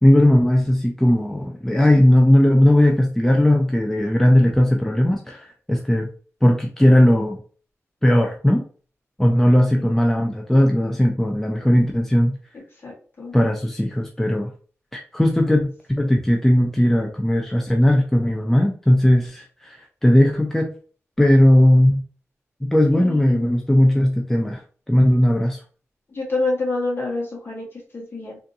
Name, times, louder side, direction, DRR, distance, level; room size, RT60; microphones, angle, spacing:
voice 1, 0.0-6.1 6.4-7.4 8.0-8.6 9.2-12.4 13.3-14.5 14.9-20.7 21.2-22.0 22.6-24.6 24.9-25.6, left 1 dB, 5° left, 1 dB, 0.4 m, -17 dB
voice 2, 12.8-13.4 22.9-23.5 26.1-28.4, left 2 dB, 45° left, -2 dB, 1.3 m, -28 dB
3.4 x 2.7 x 2.6 m, 0.40 s
wide cardioid pair, 125°, 5 cm